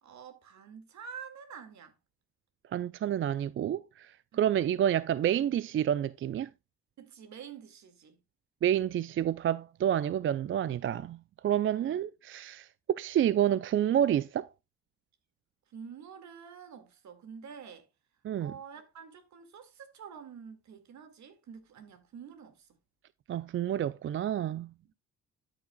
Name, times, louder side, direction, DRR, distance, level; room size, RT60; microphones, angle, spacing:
voice 1, 0.0-1.9 4.3-4.4 7.0-8.2 11.6-12.0 15.7-17.9 18.4-22.8 24.8-24.9, right 7 dB, 70° right, 2.0 m, -48 dB
voice 2, 2.7-4.1 4.4-6.5 8.6-11.2 11.4-14.5 18.2-18.5 23.3-24.7, right 10 dB, 45° right, 0.4 m, -29 dB
13.0 x 6.0 x 2.2 m
cardioid pair, 90°, 30 cm